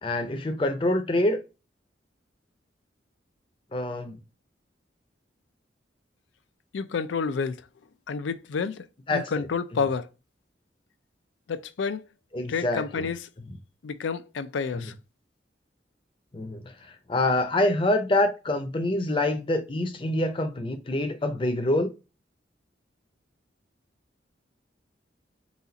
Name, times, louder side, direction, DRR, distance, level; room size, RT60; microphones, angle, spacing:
voice 1, 0.0-1.4 3.7-4.2 9.1-9.3 12.3-13.1 14.7-14.9 16.3-21.9, left 1 dB, 30° left, 0.6 m, -26 dB
voice 2, 6.7-7.6 8.1-8.8 9.1-10.1 11.5-12.0 12.5-13.2 13.8-14.9, left 5 dB, 85° left, 0.4 m, -29 dB
4.1 x 2.4 x 3.9 m
head